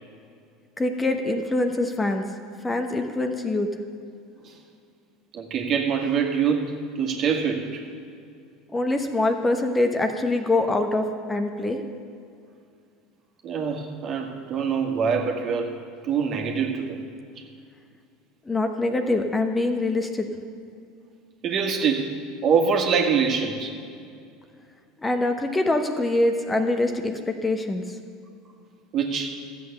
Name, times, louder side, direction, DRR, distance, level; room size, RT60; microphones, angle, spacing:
voice 1, 0.8-2.2 2.6-3.7 8.7-11.8 18.5-20.3 25.0-27.9, left 2 dB, 15° left, 5 dB, 1.0 m, -24 dB
voice 2, 5.3-6.7 7.0-7.8 13.4-15.7 16.0-17.0 21.4-22.2 22.4-23.7 28.9-29.3, right 6 dB, 45° right, 2 dB, 1.8 m, -24 dB
13.5 x 8.1 x 6.8 m, 2.4 s
hypercardioid pair, 85°, 0 cm